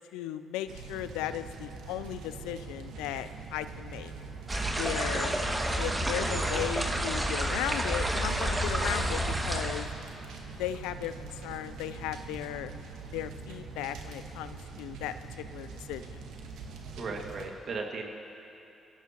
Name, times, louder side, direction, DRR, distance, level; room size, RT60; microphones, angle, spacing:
voice 1, 0.1-4.1 4.7-5.3 5.8-9.9 10.6-12.7 13.1-15.1 15.5-16.2, left 12 dB, 85° left, 12 dB, 0.5 m, -36 dB
sound 1, 0.7-17.5, right 4 dB, 80° right, 1.5 m, -44 dB
sound 2, 4.5-9.9, right 1 dB, 20° right, 2.0 m, -30 dB
voice 2, 6.2-6.7 17.0-18.0, right 4 dB, 60° right, 1 dB, 2.0 m, -37 dB
24.0 x 16.0 x 3.0 m, 2.9 s
hypercardioid pair, 50°, 0 cm